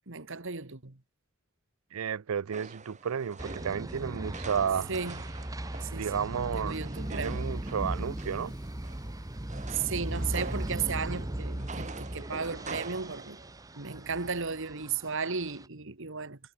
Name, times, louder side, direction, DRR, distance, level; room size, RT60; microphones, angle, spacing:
voice 1, 0.1-1.0 4.9-5.2 5.8-6.3 6.6-7.4 9.7-13.4 13.7-16.4, right 5 dB, 65° right, 1.9 m, -35 dB
voice 2, 1.9-4.9 5.9-6.8 7.1-8.5, right 7 dB, 90° right, 0.5 m, -32 dB
sound 1, 2.5-14.3, right 3 dB, 35° right, 5.8 m, -47 dB
sound 2, 3.4-15.7, right 1 dB, 15° right, 1.0 m, -38 dB
sound 3, 7.0-13.5 14.0-14.1, left 1 dB, 20° left, 6.8 m, -62 dB
head